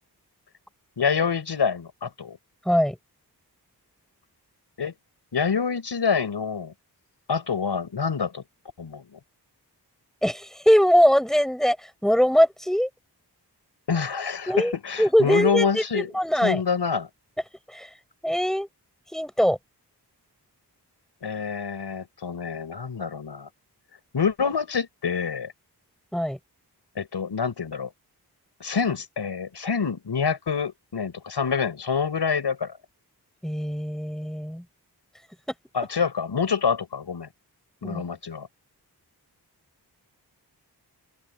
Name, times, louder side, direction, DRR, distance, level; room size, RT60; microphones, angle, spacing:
voice 1, 1.0-2.4 4.8-4.9 5.3-6.7 7.3-8.4 8.8-9.2 13.9-16.1 16.4-17.1 21.2-23.5 24.1-25.5 27.0-27.9 28.6-32.7 35.7-37.3 37.8-38.5, left 6 dB, 90° left, 5.6 m, -26 dB
voice 2, 2.7-3.0 10.2-11.8 12.0-12.9 14.5-16.6 17.7-17.9 18.2-18.7 19.1-19.6 26.1-26.4 33.4-34.6 37.8-38.0, equal, ahead, 5.9 m, -21 dB
open air
wide cardioid pair, 95°, 40 cm